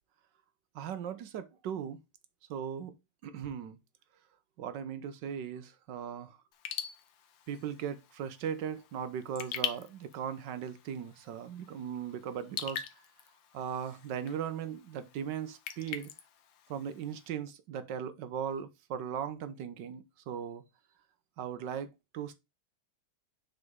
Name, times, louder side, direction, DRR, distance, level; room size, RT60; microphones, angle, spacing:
voice 1, 0.7-2.0 2.5-2.9 3.2-3.8 4.6-6.4 7.5-12.8 13.5-16.1 16.7-20.6 21.4-22.3, right 8 dB, 65° right, 1.3 m, -38 dB
Raindrop / Drip, 6.5-17.3, left 9 dB, 70° left, 1.5 m, -44 dB
6.9 x 4.0 x 3.6 m
omnidirectional pair, 2.3 m